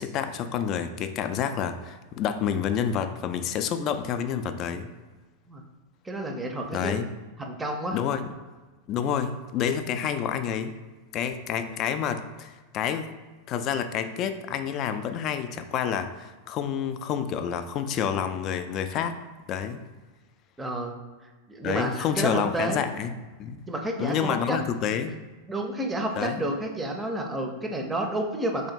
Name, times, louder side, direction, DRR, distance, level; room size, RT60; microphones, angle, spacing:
voice 1, 0.0-4.9 6.7-7.1 7.9-8.3 8.9-10.7 11.1-13.1 13.5-19.2 19.5-19.8 21.6-23.6 24.0-25.2 26.2-26.4, left 8 dB, 35° left, 9 dB, 0.3 m, -29 dB
voice 2, 6.0-7.0 7.4-8.0 20.6-21.0 21.5-22.8 23.7-24.6 25.5-28.7, right 1 dB, 10° right, 3 dB, 0.6 m, -30 dB
3.5 x 2.8 x 4.2 m, 1.3 s
figure-of-eight pair, 90°, 0 cm